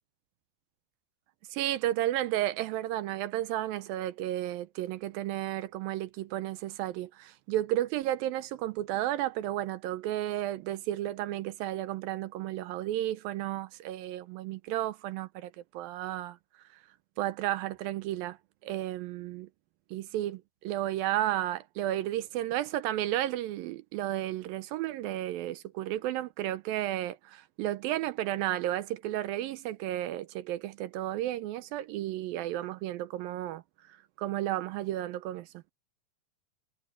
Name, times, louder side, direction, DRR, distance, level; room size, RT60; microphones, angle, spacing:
voice 1, 1.5-16.4 17.2-18.4 18.6-19.5 19.9-33.6 34.2-35.5, right 14 dB, 80° right, 2.4 m, -33 dB
omnidirectional pair, 4.3 m